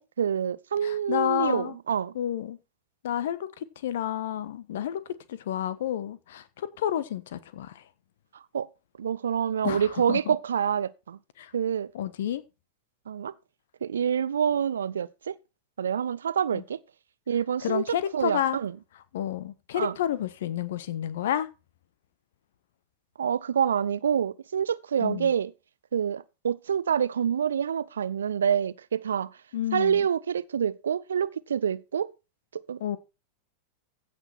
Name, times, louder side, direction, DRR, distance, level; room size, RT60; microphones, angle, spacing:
voice 1, 0.0-2.1 8.5-8.7 9.0-11.2 11.5-11.9 13.1-13.3 13.8-15.3 15.8-16.8 17.3-17.9 18.1-18.7 19.8-19.9 23.2-25.5 25.9-29.3 29.7-32.1 32.5-32.8, right 8 dB, 65° right, 0.6 m, -27 dB
voice 2, 0.8-1.8 2.1-2.6 3.0-5.0 5.3-7.8 9.6-10.3 11.4-11.5 11.9-12.4 16.5-16.6 17.6-18.6 19.1-21.5 25.0-25.3 29.5-30.0 32.8-33.0, left 11 dB, 60° left, 1.1 m, -30 dB
15.5 x 6.2 x 4.5 m
figure-of-eight pair, 90°, 0 cm